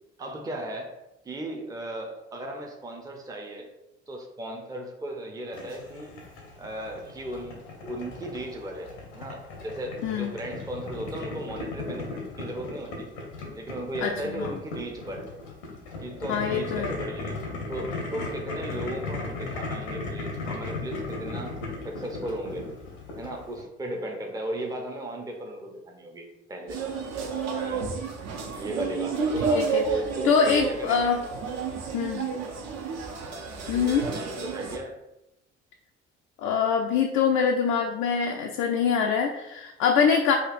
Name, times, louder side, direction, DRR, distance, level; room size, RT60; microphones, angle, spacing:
voice 1, 0.2-1.0 1.2-3.7 4.1-6.2 6.6-13.1 13.5-15.3 16.0-17.4 17.7-22.7 23.2-26.8 27.5-27.9 28.5-31.2 33.7-35.0, right 1 dB, 10° right, 1 dB, 0.6 m, -36 dB
Boiling, 5.5-23.6, left 3 dB, 75° left, 0.9 m, -37 dB
voice 2, 14.0-14.6 16.3-17.0 29.5-29.8 30.2-31.2 31.9-32.2 33.7-34.0 36.4-40.4, left 6 dB, 55° left, 2 dB, 0.4 m, -24 dB
sound 1, 26.7-34.8, right 5 dB, 50° right, 0.7 m, -31 dB
5.0 x 2.3 x 2.4 m, 0.91 s
figure-of-eight pair, 45°, 35 cm